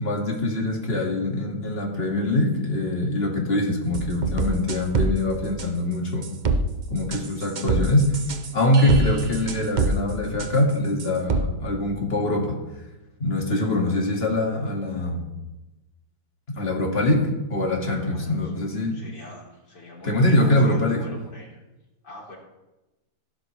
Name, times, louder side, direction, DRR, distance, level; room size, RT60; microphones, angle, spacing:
voice 1, 0.0-6.3 6.9-8.2 8.5-12.6 13.2-15.3 16.6-19.0 20.0-21.0, left 1 dB, 35° left, 0 dB, 2.4 m, -23 dB
sound 1, 3.9-5.1 5.6-5.7 6.2-6.6 7.1-9.9 10.4-10.5 11.0-11.4, right 3 dB, 45° right, 0.6 m, -24 dB
voice 2, 17.9-18.5 18.9-21.6 22.0-22.4, left 1 dB, 85° left, -3 dB, 4.0 m, -42 dB
16.0 x 11.5 x 3.3 m, 1.0 s
omnidirectional pair, 1.8 m